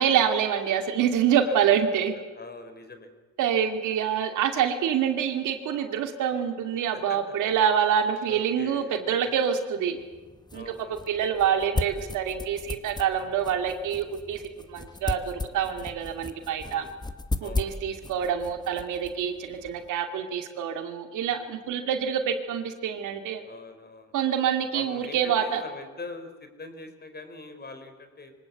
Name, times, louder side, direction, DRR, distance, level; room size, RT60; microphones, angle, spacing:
voice 1, 0.0-2.1 3.4-10.0 10.5-10.6 10.9-14.4 14.7-16.9 17.4-23.4 24.1-25.6, right 8 dB, 85° right, 6 dB, 2.5 m, -26 dB
voice 2, 2.3-3.1 7.1-7.3 8.3-9.4 10.5-11.1 16.6-17.0 17.4-17.7 21.2-21.5 23.4-24.1 24.7-28.3, left 3 dB, 35° left, 8 dB, 4.1 m, -43 dB
sound 1, 10.0-19.9, left 2 dB, 15° left, 1.2 m, -36 dB
25.0 x 18.0 x 8.4 m, 1.3 s
cardioid pair, 90°, 30 cm